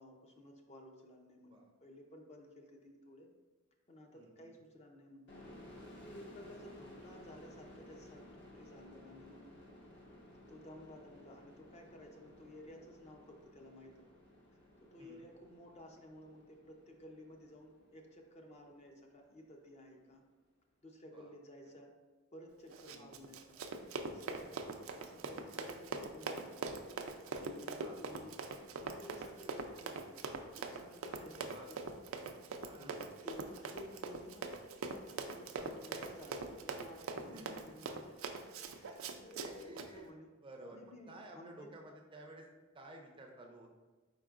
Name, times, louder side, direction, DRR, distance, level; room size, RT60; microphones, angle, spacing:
voice 1, 0.0-3.3 3.9-5.3 5.9-8.2 8.5-9.6 10.5-14.1 14.8-20.3 20.8-21.9 22.3-23.6 24.1-24.6 24.9-26.6 27.3-28.4 28.8-31.8 32.8-34.5 35.1-40.3 40.7-41.7, left 1 dB, 30° left, 2 dB, 0.5 m, -55 dB
voice 2, 4.1-4.5 6.6-6.7 15.0-15.2 21.1-21.3 22.9-23.1 27.8-28.0 31.0-31.7 32.6-33.0 35.5-35.9 37.3-37.8 39.4-40.1 40.4-42.4 42.7-43.7, right 1 dB, 25° right, 1 dB, 0.5 m, -54 dB
sound 1, 5.3-18.7, left 1 dB, 60° left, 1.1 m, -57 dB
Run, 22.7-39.9, right 4 dB, 80° right, 0.4 m, -43 dB
4.6 x 4.5 x 2.4 m, 1.3 s
head